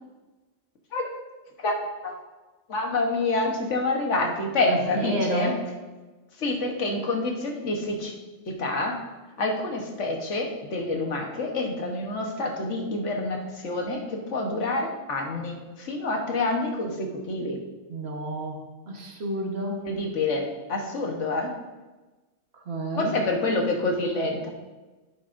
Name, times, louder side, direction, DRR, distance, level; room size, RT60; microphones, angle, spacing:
voice 1, 2.7-5.5 6.4-8.1 8.5-9.0 9.4-17.6 19.8-21.5 23.0-24.5, left 2 dB, 90° left, 2 dB, 1.5 m, -27 dB
voice 2, 4.7-5.6 17.9-18.6 18.9-19.9 22.5-23.2, right 1 dB, 60° right, 1 dB, 1.5 m, -30 dB
11.0 x 8.7 x 2.6 m, 1.2 s
omnidirectional pair, 1.2 m